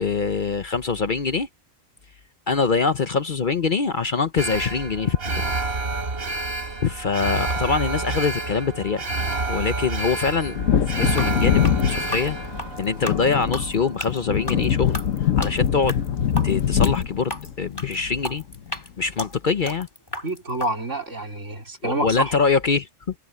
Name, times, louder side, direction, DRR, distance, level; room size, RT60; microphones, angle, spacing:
voice 1, 0.0-1.5 2.5-5.2 6.8-9.1 9.5-10.6 10.9-12.4 12.8-15.0 15.4-16.0 16.4-18.4 19.0-19.9 21.8-23.1, left 5 dB, 45° left, 0.8 m, -24 dB
Alarm, 4.4-14.6 15.0-15.1, right 2 dB, 50° right, 1.8 m, -29 dB
Wind / Thunder, 10.4-18.7 19.0-19.1, left 8 dB, 90° left, 1.4 m, -24 dB
sound 1, 11.2-20.7, left 1 dB, 20° left, 3.1 m, -35 dB
voice 2, 20.2-22.4, right 1 dB, 75° right, 4.5 m, -27 dB
omnidirectional pair, 1.3 m